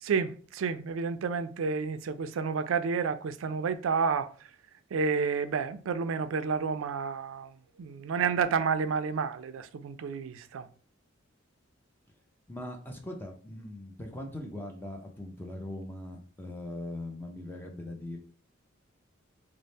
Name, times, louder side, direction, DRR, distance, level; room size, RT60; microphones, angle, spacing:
voice 1, 0.0-4.3 4.9-10.7, right 5 dB, 85° right, 0.4 m, -30 dB
voice 2, 12.5-18.2, left 1 dB, 10° left, 0.5 m, -40 dB
3.4 x 2.0 x 4.0 m
head